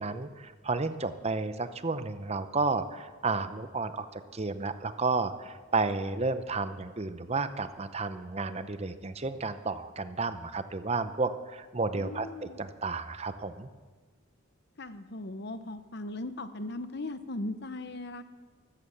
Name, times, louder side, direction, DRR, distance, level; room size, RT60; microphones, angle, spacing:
voice 1, 0.0-13.7, right 3 dB, 30° right, 11 dB, 0.7 m, -32 dB
voice 2, 11.9-12.6 14.8-18.2, left 2 dB, 55° left, 11 dB, 0.9 m, -38 dB
14.5 x 13.0 x 7.2 m, 1.4 s
head